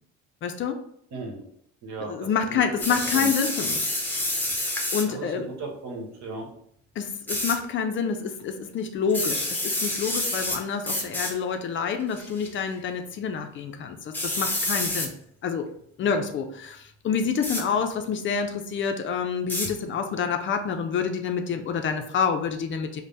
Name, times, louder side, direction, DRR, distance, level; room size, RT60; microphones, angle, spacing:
voice 1, 0.4-0.8 2.0-3.9 4.6-5.5 7.0-15.1 15.4-15.7 16.0-23.0, left 6 dB, 45° left, 6 dB, 0.4 m, -28 dB
voice 2, 1.1-1.5 1.8-2.8 3.1-3.3 5.1-6.5, right 3 dB, 65° right, 1 dB, 1.1 m, -37 dB
sound 1, 2.8-5.1 7.3-7.5 9.1-10.6 10.8-11.3 12.1-12.5 14.1-15.1 17.4-17.6 19.5-19.7, left 1 dB, 5° left, 0.8 m, -28 dB
3.3 x 2.1 x 3.9 m, 0.70 s
cardioid pair, 105°, 29 cm